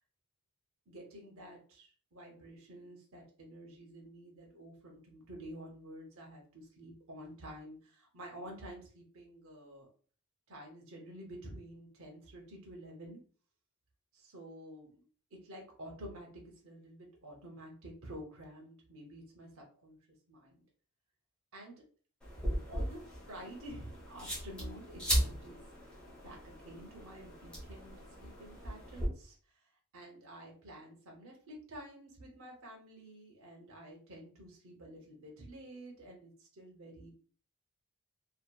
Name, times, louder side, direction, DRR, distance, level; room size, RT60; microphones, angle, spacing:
voice 1, 0.9-9.9 10.5-13.2 14.1-20.0 20.3-20.6 21.5-21.8 22.7-25.6 25.9-27.9 28.2-29.4 29.9-37.1, right 1 dB, 65° right, 0 dB, 0.7 m, -50 dB
sound 1, 22.2-29.1, equal, 5° left, 0.9 m, -38 dB
2.7 x 2.4 x 2.2 m, 0.42 s
head